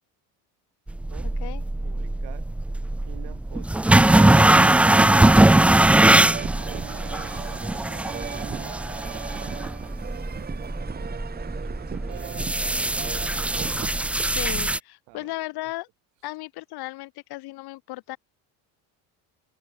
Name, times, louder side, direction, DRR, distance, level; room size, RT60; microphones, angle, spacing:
sound 1, 0.9-14.8, right 1 dB, 5° right, 0.3 m, -21 dB
voice 1, 1.8-2.5 3.1-4.9 6.1-9.6 11.3-13.4 15.1-15.3, right 28 dB, 75° right, 3.7 m, -46 dB
sound 2, 4.1-14.1, right 7 dB, 20° right, 1.7 m, -37 dB
voice 2, 14.2-15.9 16.2-18.2, left 19 dB, 60° left, 4.5 m, -35 dB
open air
cardioid pair, 145°, 42 cm